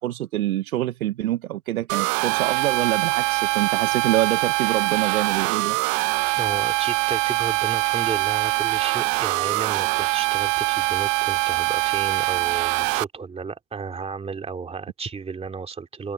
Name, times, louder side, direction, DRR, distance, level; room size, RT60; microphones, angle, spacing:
voice 1, 0.0-5.8, right 14 dB, 85° right, 1.0 m, -26 dB
sound 1, 1.9-13.0, right 25 dB, 45° right, 1.0 m, -23 dB
voice 2, 6.4-16.1, right 5 dB, 15° right, 2.6 m, -33 dB
hypercardioid pair, 125°, 42 cm